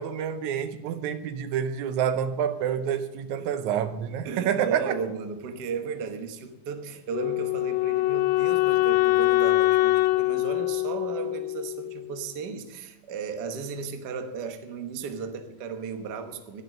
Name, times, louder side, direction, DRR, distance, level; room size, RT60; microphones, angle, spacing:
voice 1, 0.0-5.0, right 8 dB, 85° right, 2.2 m, -28 dB
voice 2, 4.2-16.6, right 5 dB, 55° right, 1.1 m, -35 dB
Wind instrument woodwind instrument, 7.1-12.2, left 19 dB, 80° left, 1.7 m, -24 dB
11.0 x 11.0 x 6.4 m
omnidirectional pair, 3.3 m